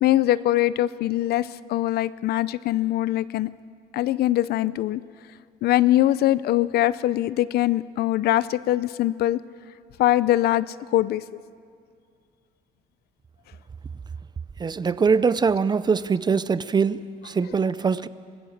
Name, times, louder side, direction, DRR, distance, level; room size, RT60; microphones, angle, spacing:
voice 1, 0.0-3.5 3.9-5.0 5.6-9.4 10.0-11.3 17.4-17.6, left 14 dB, 70° left, 0.6 m, -22 dB
voice 2, 14.6-18.1, right 5 dB, 25° right, 0.6 m, -22 dB
24.0 x 17.5 x 7.3 m
cardioid pair, 110°, 17 cm